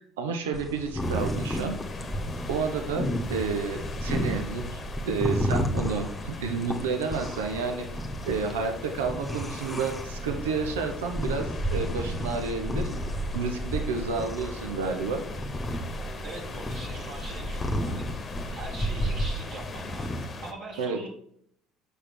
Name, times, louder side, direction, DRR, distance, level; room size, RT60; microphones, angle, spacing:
voice 1, 0.0-1.8 2.5-15.2 20.8-21.0, right 5 dB, 85° right, 4 dB, 0.9 m, -31 dB
sound 1, 0.5-20.2, equal, 15° left, 1.2 m, -32 dB
sound 2, 1.0-20.5, left 3 dB, 40° left, 1.1 m, -41 dB
voice 2, 16.2-18.1 18.5-21.1, right 2 dB, 60° right, -4 dB, 2.0 m, -42 dB
6.9 x 5.0 x 4.5 m, 0.65 s
hypercardioid pair, 70°, 0 cm